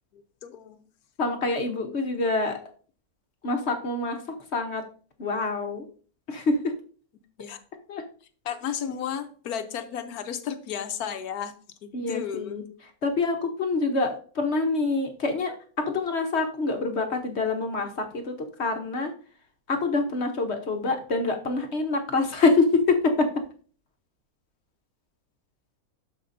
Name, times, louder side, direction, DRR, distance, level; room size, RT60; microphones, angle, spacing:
voice 1, 0.1-0.8 7.4-7.6 8.4-11.5 11.8-12.6, left 8 dB, 75° left, 9 dB, 1.2 m, -33 dB
voice 2, 1.2-2.6 3.4-4.2 4.5-4.8 5.2-5.9 6.3-6.7 7.9-8.0 11.9-12.6 13.0-19.1 19.7-22.7 23.0-23.3, left 3 dB, 50° left, 4 dB, 1.1 m, -26 dB
12.0 x 5.0 x 2.6 m, 0.43 s
omnidirectional pair, 1.6 m